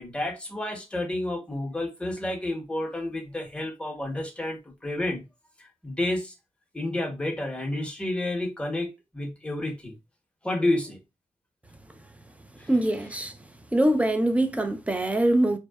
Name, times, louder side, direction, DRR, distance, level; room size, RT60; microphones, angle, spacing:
voice 1, 0.0-5.3 5.6-6.3 6.7-9.9 10.4-11.0 12.6-12.7, left 1 dB, 10° left, 0.8 m, -30 dB
voice 2, 12.7-13.4 13.7-15.6, right 1 dB, 10° right, 0.4 m, -23 dB
2.6 x 2.1 x 2.2 m
wide cardioid pair, 90°, 12 cm